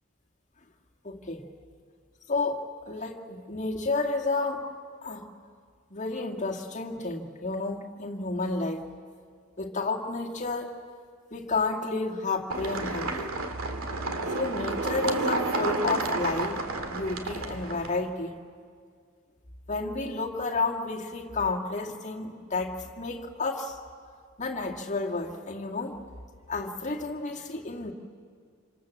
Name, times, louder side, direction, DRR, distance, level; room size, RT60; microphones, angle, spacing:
voice 1, 1.0-1.4 2.3-4.7 5.0-5.3 5.9-8.9 9.6-10.8 11.3-13.4 14.3-16.6 16.9-18.4 19.7-23.8 24.4-26.0 26.5-27.9, left 3 dB, 35° left, 0 dB, 2.2 m, -31 dB
sound 1, 12.5-18.0, right 2 dB, 85° right, 2.2 m, -31 dB
27.5 x 26.0 x 7.4 m, 2.1 s
head